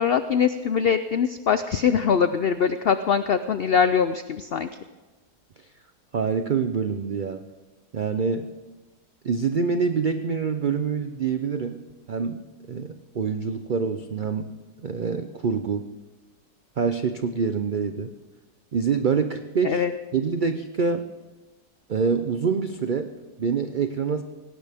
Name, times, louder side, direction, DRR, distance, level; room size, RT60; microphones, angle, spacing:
voice 1, 0.0-4.7 19.6-19.9, left 7 dB, 85° left, 11 dB, 0.5 m, -22 dB
voice 2, 6.1-7.4 7.9-8.5 9.2-14.5 14.8-15.9 16.8-18.1 18.7-19.8 20.1-21.1 21.9-24.2, right 5 dB, 80° right, 8 dB, 0.4 m, -26 dB
18.0 x 17.0 x 3.5 m, 1.2 s
omnidirectional pair, 1.7 m